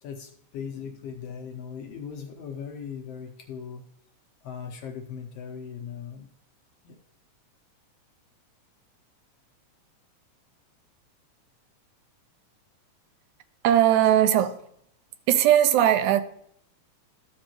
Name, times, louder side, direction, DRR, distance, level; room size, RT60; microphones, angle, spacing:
voice 1, 0.0-3.8 4.4-6.3 6.8-7.0, left 7 dB, 70° left, 1.6 m, -38 dB
voice 2, 13.6-14.6 15.3-16.2, right 11 dB, 90° right, 2.1 m, -19 dB
13.5 x 5.3 x 3.0 m
omnidirectional pair, 3.3 m